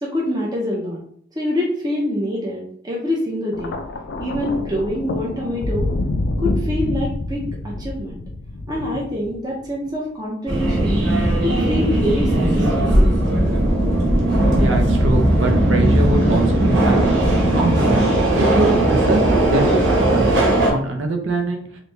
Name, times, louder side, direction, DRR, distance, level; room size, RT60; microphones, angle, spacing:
voice 1, 0.0-1.0 1.4-3.7 4.2-5.9 6.4-8.2 8.7-11.0 11.4-13.5, left 1 dB, 20° right, -3 dB, 0.6 m, -25 dB
Thunder, 3.5-9.9 10.9-11.1, left 2 dB, 65° left, 0.4 m, -27 dB
Subway metro underground, 10.5-20.7, right 1 dB, 70° right, 1.2 m, -17 dB
voice 2, 14.6-17.1 17.5-17.9 18.3-19.2 19.5-20.2 20.7-21.6, right 2 dB, 85° right, 3 dB, 0.7 m, -23 dB
3.1 x 2.6 x 3.2 m, 0.63 s
head